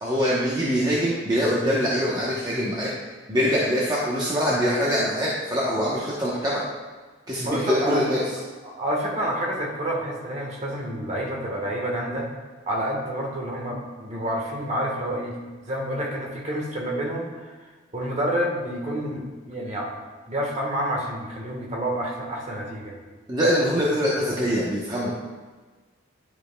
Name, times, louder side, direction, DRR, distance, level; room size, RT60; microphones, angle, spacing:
voice 1, 0.0-2.9 3.3-6.6 7.3-8.2 23.3-25.1, equal, 20° right, -6 dB, 0.9 m, -23 dB
voice 2, 7.4-8.0 8.6-12.3 12.7-15.4 15.6-20.0 20.3-23.0, right 1 dB, 35° right, -1 dB, 1.3 m, -29 dB
10.5 x 5.2 x 2.2 m, 1.4 s
head